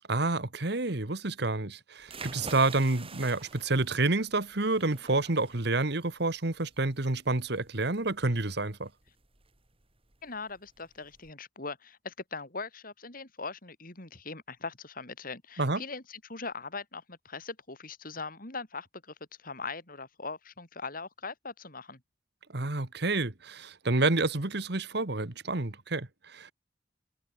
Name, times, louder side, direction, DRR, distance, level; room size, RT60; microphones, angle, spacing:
voice 1, 0.1-8.9 15.6-15.8 22.5-26.5, right 2 dB, 65° right, 1.8 m, -29 dB
sound 1, 2.0-11.3, right 4 dB, 30° right, 5.0 m, -49 dB
voice 2, 10.2-22.0, left 4 dB, 50° left, 5.0 m, -41 dB
head